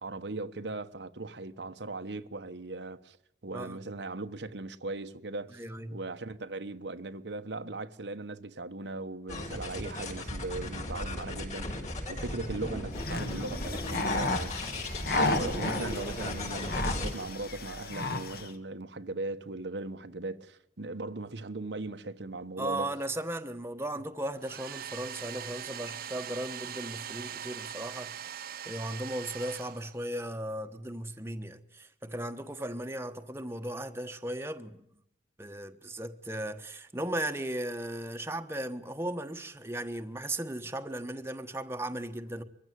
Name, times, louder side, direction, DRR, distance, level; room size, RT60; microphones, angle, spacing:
voice 1, 0.0-3.2 3.4-5.6 5.9-14.7 15.1-22.9, right 2 dB, 85° right, 1.2 m, -38 dB
voice 2, 5.5-6.0 22.6-28.1 28.7-34.8 35.4-42.4, right 1 dB, 15° right, 1.2 m, -36 dB
sound 1, 9.3-17.1, left 1 dB, 45° left, 5.5 m, -36 dB
sound 2, 12.9-18.5, left 2 dB, 60° left, 2.0 m, -33 dB
Domestic sounds home sounds, 24.4-30.2, right 9 dB, 55° right, 0.8 m, -41 dB
23.0 x 15.0 x 9.3 m
head